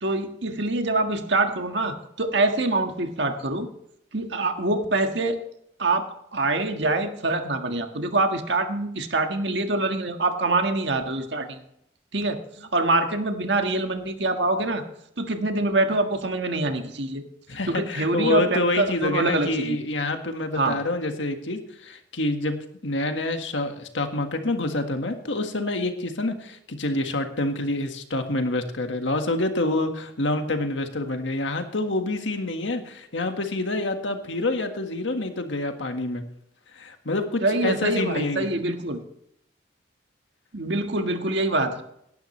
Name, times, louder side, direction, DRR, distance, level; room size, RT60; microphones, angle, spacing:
voice 1, 0.0-3.7 4.1-5.4 5.8-11.6 12.1-12.4 12.7-14.8 15.2-17.2 17.7-19.8 20.5-20.8 37.4-39.0 40.5-41.8, right 2 dB, 70° right, 5 dB, 1.6 m, -25 dB
voice 2, 17.5-22.6 22.8-36.2 36.7-38.5, left 2 dB, 85° left, 6 dB, 1.7 m, -27 dB
18.0 x 11.5 x 3.2 m, 0.74 s
head